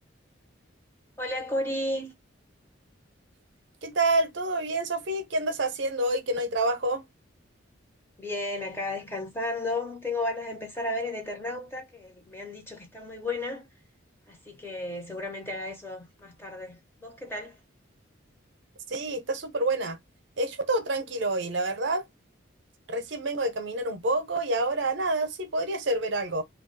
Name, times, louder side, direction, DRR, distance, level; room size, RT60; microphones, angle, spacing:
voice 1, 1.2-2.1 8.2-13.7 14.3-17.6, left 2 dB, 10° left, 0.8 m, -33 dB
voice 2, 3.8-7.0 18.9-20.0 20.4-22.0 22.9-26.4, right 2 dB, 65° right, 0.7 m, -28 dB
2.9 x 2.3 x 3.8 m
head